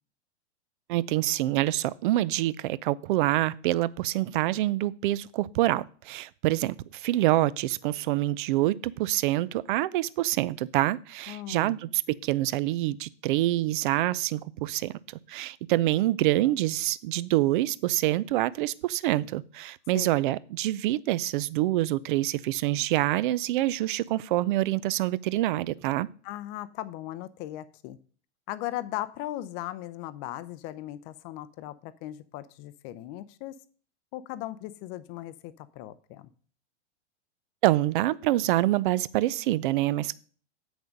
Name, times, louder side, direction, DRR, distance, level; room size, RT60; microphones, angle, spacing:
voice 1, 0.9-15.0 15.3-26.1 37.6-40.2, right 16 dB, 50° right, 20 dB, 0.5 m, -26 dB
voice 2, 11.3-11.8 19.9-20.1 26.2-28.0 28.5-33.6 34.1-36.3, left 14 dB, 35° left, 13 dB, 0.6 m, -38 dB
7.9 x 6.1 x 5.2 m, 0.44 s
hypercardioid pair, 115°, 34 cm